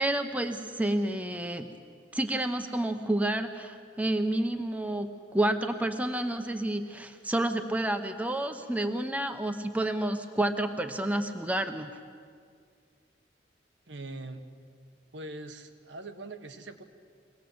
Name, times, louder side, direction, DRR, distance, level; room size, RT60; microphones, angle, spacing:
voice 1, 0.0-1.7 2.1-12.0, right 1 dB, 10° right, 6 dB, 0.9 m, -30 dB
voice 2, 13.9-14.4 15.1-16.8, right 2 dB, 85° right, 7 dB, 1.4 m, -42 dB
24.0 x 18.5 x 7.9 m, 2.1 s
head